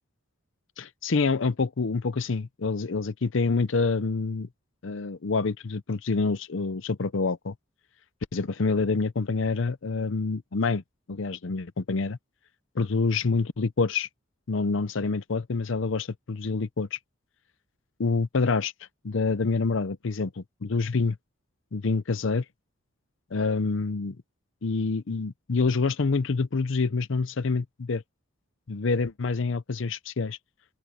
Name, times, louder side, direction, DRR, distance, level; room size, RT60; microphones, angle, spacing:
voice 1, 0.8-4.5 4.8-7.5 8.3-10.8 11.1-12.2 12.8-14.1 14.5-17.0 18.0-18.7 19.0-21.2 21.7-22.4 23.3-24.2 24.6-28.0 28.7-30.4, left 4 dB, 65° left, 0.6 m, -27 dB
open air
head